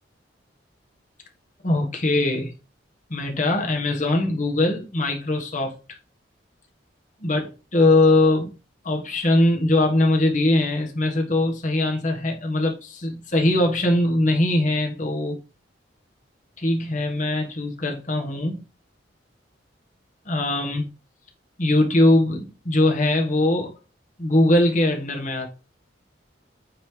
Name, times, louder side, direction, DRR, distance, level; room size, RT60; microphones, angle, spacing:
voice 1, 1.6-2.5 3.1-5.7 7.2-7.4 7.7-8.5 8.8-15.4 16.6-18.6 20.2-20.9 21.6-23.7 24.2-25.5, left 1 dB, 40° left, 1.4 m, -21 dB
8.6 x 3.3 x 3.7 m
head